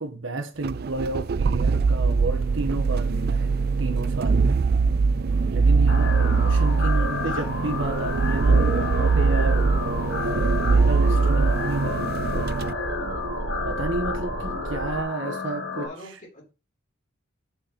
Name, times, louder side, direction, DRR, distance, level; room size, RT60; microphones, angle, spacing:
voice 1, 0.0-4.6 5.5-9.7 10.6-12.6 13.6-15.9, right 2 dB, 70° right, 1.3 m, -32 dB
sound 1, 0.6-12.7, right 4 dB, 50° right, 0.4 m, -22 dB
sound 2, 5.9-15.9, left 4 dB, 75° left, 2.8 m, -32 dB
voice 2, 7.0-7.4 15.7-16.5, left 1 dB, 40° left, 3.2 m, -45 dB
sound 3, 7.8-15.0, right 2 dB, 85° right, 1.4 m, -31 dB
6.4 x 6.4 x 4.2 m
head